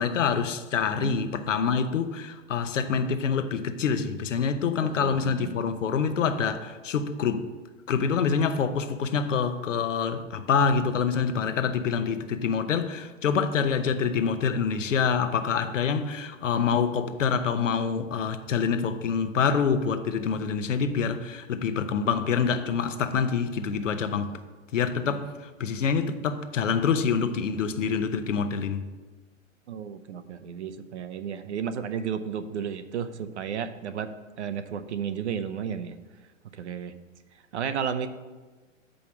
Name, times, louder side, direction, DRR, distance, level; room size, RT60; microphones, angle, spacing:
voice 1, 0.0-7.5 7.9-24.4 24.7-28.8, left 6 dB, 65° left, 9 dB, 0.8 m, -26 dB
voice 2, 4.8-5.5 29.7-34.1 34.4-35.9 36.6-36.9 37.5-38.1, right 7 dB, 60° right, 11 dB, 0.7 m, -33 dB
7.1 x 5.0 x 6.0 m, 1.3 s
figure-of-eight pair, 115°, 40 cm